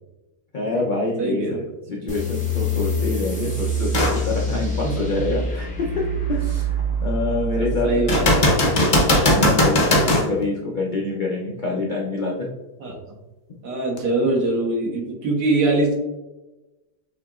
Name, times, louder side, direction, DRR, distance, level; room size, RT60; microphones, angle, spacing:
voice 1, 0.5-1.6 1.9-5.9 6.3-7.9 9.2-12.5, left 3 dB, 75° left, -3 dB, 0.4 m, -26 dB
voice 2, 1.2-1.6 4.8-4.9 7.6-8.4 12.8-13.0 13.6-15.9, right 2 dB, 75° right, -2 dB, 1.7 m, -23 dB
sound 1, 2.1-9.2, right 1 dB, 10° left, 0.4 m, -26 dB
sound 2, 3.9-4.2 4.8-4.9 8.1-10.3 14.0-14.1, left 1 dB, 40° left, 0.7 m, -18 dB
6.5 x 2.9 x 2.4 m, 1.0 s
omnidirectional pair, 1.8 m